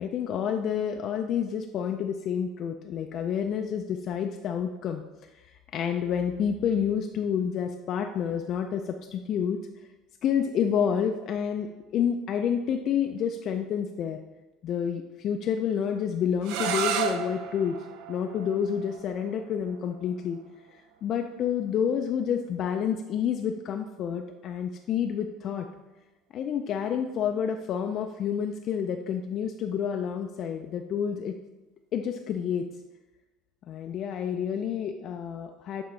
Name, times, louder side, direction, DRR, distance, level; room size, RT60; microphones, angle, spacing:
voice 1, 0.0-5.0 5.3-9.6 10.2-14.2 14.6-17.8 18.1-20.4 20.7-25.7 26.3-31.4 31.9-32.7 33.7-35.8, left 8 dB, 45° left, 4 dB, 0.3 m, -29 dB
sound 1, 16.4-22.1, right 8 dB, 75° right, 0.5 m, -35 dB
8.0 x 3.7 x 3.2 m, 1.1 s
cardioid pair, 140°, 0 cm